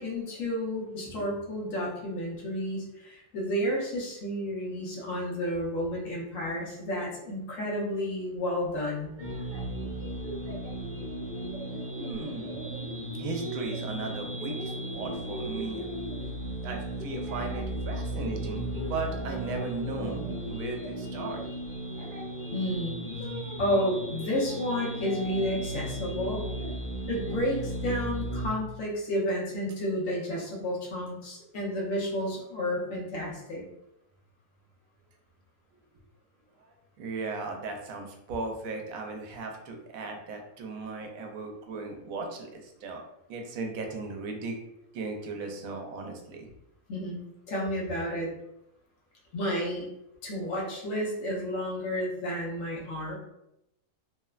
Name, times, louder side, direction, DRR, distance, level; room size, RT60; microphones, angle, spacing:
voice 1, 0.0-9.1 22.5-23.0 23.6-26.5 27.1-33.6 46.9-48.3 49.3-49.9 50.2-53.2, equal, 70° left, -3 dB, 1.1 m, -31 dB
sound 1, 9.0-16.6 16.9-19.1 19.4-23.8 24.1-25.6 25.9-27.4, equal, 50° right, 0.6 m, -42 dB
sound 2, 9.2-28.5, right 1 dB, 55° left, 0.7 m, -36 dB
voice 2, 12.0-12.5 13.2-15.9 16.6-21.4 35.7-35.8 36.7-43.0 43.3-44.5 44.9-46.5, right 3 dB, 85° right, 3 dB, 1.0 m, -37 dB
3.0 x 2.1 x 2.3 m, 0.85 s
omnidirectional pair, 1.4 m